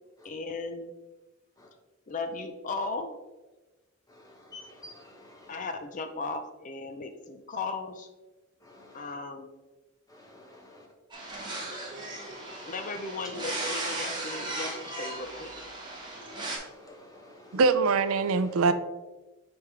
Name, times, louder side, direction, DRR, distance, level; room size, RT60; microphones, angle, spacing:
voice 1, 0.2-0.9 2.1-3.2 5.5-8.1 8.9-9.5 12.7-15.7, left 3 dB, 40° left, 7 dB, 0.5 m, -36 dB
voice 2, 4.1-5.5 8.6-9.1 10.1-10.9 11.6-12.7 16.3-17.6, left 2 dB, 15° left, 0 dB, 1.2 m, -51 dB
sound 1, 11.1-16.6, right 2 dB, 20° right, 1.4 m, -36 dB
voice 3, 17.5-18.7, right 4 dB, 85° right, 12 dB, 0.4 m, -23 dB
9.5 x 3.4 x 3.3 m, 1.2 s
head